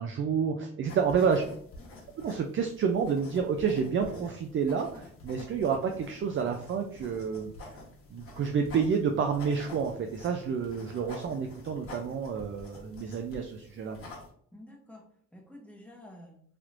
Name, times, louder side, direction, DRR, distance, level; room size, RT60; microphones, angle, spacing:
voice 1, 0.0-1.4 2.2-7.8 8.1-14.0, right 6 dB, 40° right, 4 dB, 0.4 m, -29 dB
sound 1, 0.8-14.3, left 2 dB, 45° left, 1.2 m, -48 dB
voice 2, 14.5-16.4, left 1 dB, 5° left, -1 dB, 0.9 m, -50 dB
3.3 x 2.9 x 2.5 m, 0.62 s
cardioid pair, 90°, 30 cm